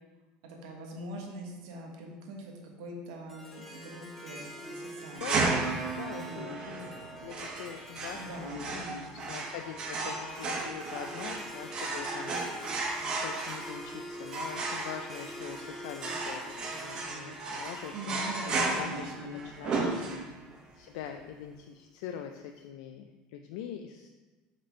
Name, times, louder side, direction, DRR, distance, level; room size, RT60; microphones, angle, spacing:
voice 1, 0.4-5.5 6.1-6.6 8.1-9.3 17.9-20.3, right 1 dB, 75° right, 1 dB, 1.2 m, -43 dB
Harp, 3.3-20.6, equal, 5° left, 0.6 m, -47 dB
voice 2, 5.1-5.5 6.0-8.8 9.3-18.3 18.6-20.0 20.7-24.1, left 9 dB, 75° left, 5 dB, 0.4 m, -43 dB
sound 1, 5.2-20.5, right 3 dB, 30° right, 0.8 m, -34 dB
5.1 x 4.2 x 4.5 m, 1.2 s
cardioid pair, 165°, 3 cm